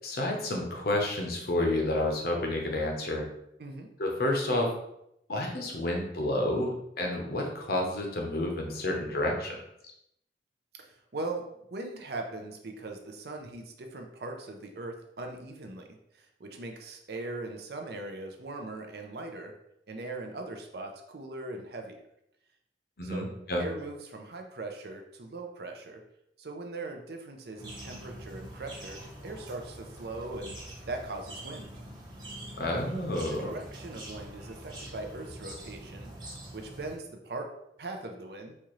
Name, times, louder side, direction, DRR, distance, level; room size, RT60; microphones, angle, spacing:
voice 1, 0.0-3.3 4.0-4.7 5.3-9.6 23.0-23.6 32.6-33.5, left 1 dB, 60° left, 1 dB, 0.8 m, -30 dB
voice 2, 10.7-15.9 16.1-19.5 19.9-22.0 23.0-26.0 26.4-30.6 30.9-31.7 33.3-37.5 37.8-38.5, right 2 dB, 60° right, 4 dB, 0.5 m, -40 dB
sound 1, 27.6-37.0, right 1 dB, 25° right, 1.0 m, -44 dB
4.2 x 2.4 x 3.1 m, 0.78 s
head